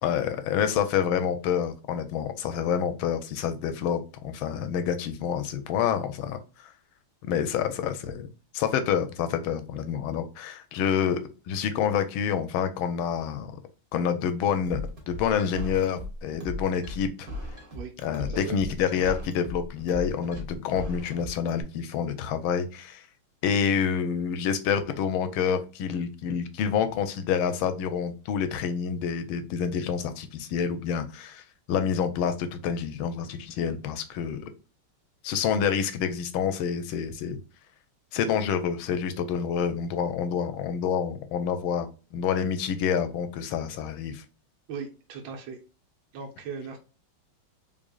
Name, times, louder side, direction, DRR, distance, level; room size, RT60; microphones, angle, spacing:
voice 1, 0.0-4.0 4.2-6.7 7.2-8.3 8.5-13.6 13.9-17.3 18.0-23.0 23.4-34.5 35.2-37.4 38.1-44.2, left 7 dB, 80° left, 10 dB, 1.4 m, -28 dB
sound 1, 14.7-21.6, left 1 dB, 30° right, 1.3 m, -37 dB
voice 2, 44.7-45.6 46.1-46.8, right 6 dB, 75° right, 2 dB, 1.4 m, -38 dB
3.7 x 3.5 x 2.3 m, 0.33 s
omnidirectional pair, 2.3 m